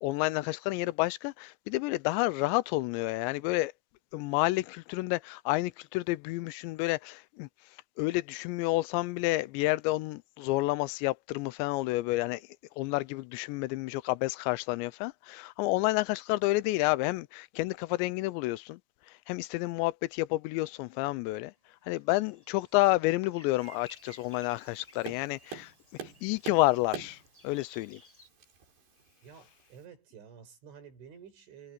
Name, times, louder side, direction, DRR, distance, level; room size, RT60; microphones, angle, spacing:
voice 1, 0.0-3.7 4.1-7.5 8.0-12.4 12.8-18.8 19.3-21.5 21.9-25.7 26.2-27.2 27.4-28.0, left 20 dB, 80° left, 2.7 m, -29 dB
sound 1, 21.8-28.3, equal, 5° left, 7.4 m, -57 dB
Tap, 23.6-29.8, right 6 dB, 60° right, 7.6 m, -47 dB
voice 2, 29.2-31.7, right 7 dB, 85° right, 7.6 m, -51 dB
omnidirectional pair, 5.3 m